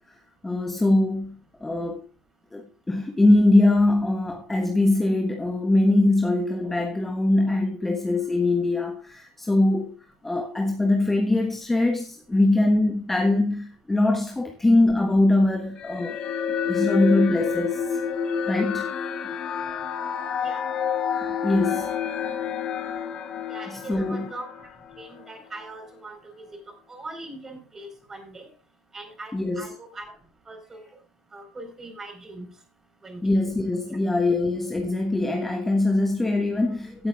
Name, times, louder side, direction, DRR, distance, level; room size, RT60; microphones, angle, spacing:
voice 1, 0.4-2.0 2.5-9.9 10.2-16.2 16.5-18.0 18.5-18.9 21.4-21.9 23.7-24.3 29.3-29.7 33.2-37.1, left 2 dB, 10° left, 1.3 m, -22 dB
sound 1, 15.8-25.3, left 7 dB, 40° left, 1.6 m, -29 dB
voice 2, 23.5-24.7 25.0-26.4 26.9-28.5 28.9-30.1 30.5-30.8 31.3-32.5 33.0-33.2, right 2 dB, 20° right, 4.4 m, -41 dB
16.5 x 8.7 x 2.4 m
figure-of-eight pair, 70°, 2 cm